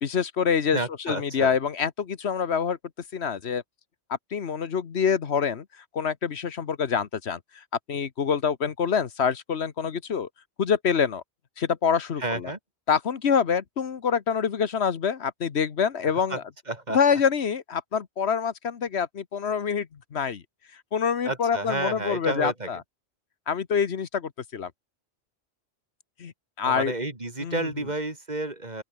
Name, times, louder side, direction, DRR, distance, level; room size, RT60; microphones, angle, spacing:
voice 1, 0.0-2.8 3.1-3.6 4.3-5.6 5.9-10.3 10.6-11.2 11.6-12.5 12.9-16.4 16.9-20.4 20.9-22.8 23.5-24.7 26.2-26.9 27.4-27.7, left 6 dB, 75° left, 1.4 m, -26 dB
voice 2, 0.7-1.6 12.2-12.6 16.3-16.4 16.7-17.2 21.2-22.7 26.6-28.8, right 2 dB, 40° right, 2.9 m, -31 dB
open air
omnidirectional pair, 1.1 m